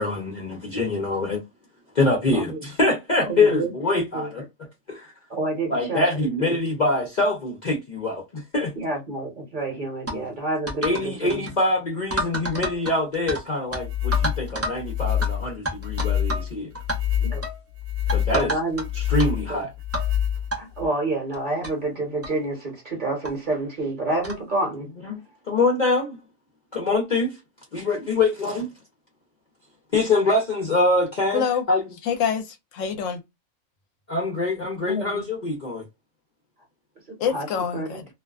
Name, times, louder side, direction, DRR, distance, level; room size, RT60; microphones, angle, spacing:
voice 1, 0.0-1.4 1.9-4.4 4.9-5.1 5.7-8.7 10.1-10.2 10.8-16.7 18.1-18.5 19.1-19.7 25.0-25.2 25.5-26.2 26.7-27.4 27.7-28.7 29.9-31.8 34.1-35.8, left 2 dB, 45° left, 0.6 m, -24 dB
voice 2, 3.3-3.7 4.1-4.3 5.3-6.0 6.4-6.6 8.7-11.5 17.2-17.4 18.3-18.8 19.5-19.6 20.5-24.9 34.8-35.2 37.3-37.5 37.7-38.0, right 2 dB, 40° right, 1.1 m, -28 dB
sound 1, 10.1-10.2 10.7-11.0 11.3-11.5 12.1-13.4 13.7-13.8 14.1-14.8 15.2-15.3 15.7-16.5 16.7-17.0 17.4-17.6 18.1-18.8 19.2-19.3 19.9-20.1 20.5-20.6 21.3-21.4 21.6-21.7 22.2-22.4 23.2-23.3 24.2-24.4, right 1 dB, 20° right, 0.4 m, -29 dB
sound 2, 13.7-20.9, left 10 dB, 85° right, 1.1 m, -26 dB
voice 3, 31.3-31.7 32.0-33.2 37.2-38.1, left 7 dB, 75° left, 0.9 m, -26 dB
2.6 x 2.2 x 2.3 m
omnidirectional pair, 1.4 m